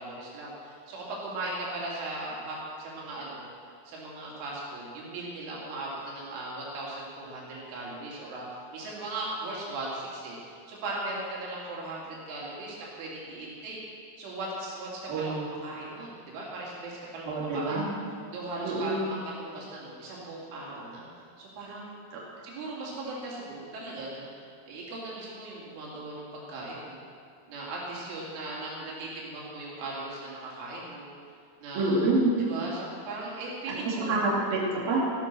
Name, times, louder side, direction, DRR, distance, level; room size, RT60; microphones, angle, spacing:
voice 1, 0.0-3.5 3.9-13.8 14.2-17.8 18.3-21.1 21.4-22.0 22.4-27.0 27.5-31.1 31.6-32.0 32.4-34.1, right 2 dB, 85° right, -5 dB, 5.4 m, -38 dB
voice 2, 15.1-15.4 17.3-17.9 18.6-19.0 22.1-22.2 31.7-32.4 33.8-35.0, right 2 dB, 55° right, -5 dB, 4.2 m, -27 dB
14.5 x 12.5 x 6.2 m, 2.2 s
omnidirectional pair, 5.4 m